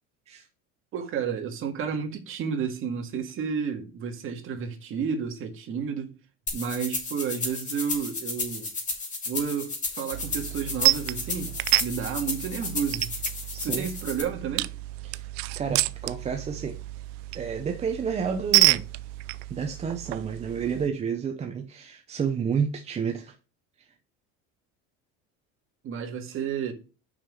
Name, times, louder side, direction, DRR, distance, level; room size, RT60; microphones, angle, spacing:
voice 1, 0.9-6.1 6.5-8.7 9.3-11.5 11.8-13.1 13.6-14.7 25.8-26.7, right 7 dB, 45° right, 1.9 m, -31 dB
sound 1, 6.5-14.2, left 3 dB, 25° left, 2.4 m, -33 dB
sound 2, 10.1-20.9, right 20 dB, 90° right, 0.5 m, -29 dB
voice 2, 13.5-13.9 15.0-15.2 15.6-16.8 17.3-18.8 19.5-23.3, right 6 dB, 20° right, 0.6 m, -30 dB
5.9 x 5.5 x 6.3 m
cardioid pair, 145°, 30 cm